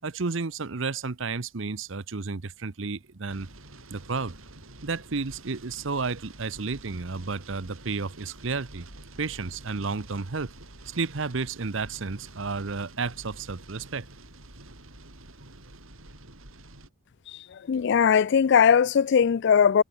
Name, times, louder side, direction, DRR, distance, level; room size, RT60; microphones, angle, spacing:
voice 1, 0.0-3.5 3.9-4.4 4.8-8.9 9.2-10.5 10.9-14.1, right 4 dB, 65° right, 0.9 m, -32 dB
sound 1, 3.3-16.9, right 2 dB, 85° right, 6.1 m, -48 dB
voice 2, 17.7-19.8, left 7 dB, 55° left, 0.3 m, -19 dB
head